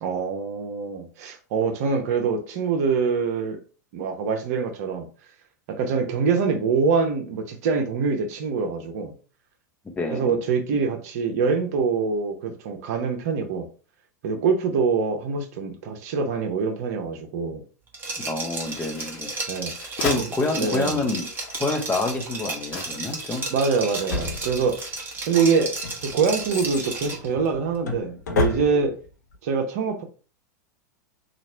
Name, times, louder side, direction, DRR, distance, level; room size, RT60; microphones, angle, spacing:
voice 1, 0.0-3.6 3.9-5.1 5.7-9.1 10.1-13.7 14.2-17.6 19.5-19.7 20.6-21.0 23.5-24.9 25.3-25.7 26.1-29.0 29.4-30.0, right 5 dB, 60° right, 0.9 m, -24 dB
voice 2, 10.0-10.4 18.2-19.3 19.7-21.3 21.6-23.5, left 2 dB, 15° left, 0.9 m, -27 dB
Liquid, 17.9-27.3, right 3 dB, 20° right, 1.2 m, -33 dB
sound 1, 18.5-20.3 21.0-23.4 23.7-24.4, left 5 dB, 50° left, 1.1 m, -37 dB
Drawer open or close, 24.1-25.0 25.6-29.1 29.3-29.4, left 4 dB, 75° left, 0.8 m, -30 dB
3.0 x 2.5 x 4.2 m
hypercardioid pair, 95°, 10 cm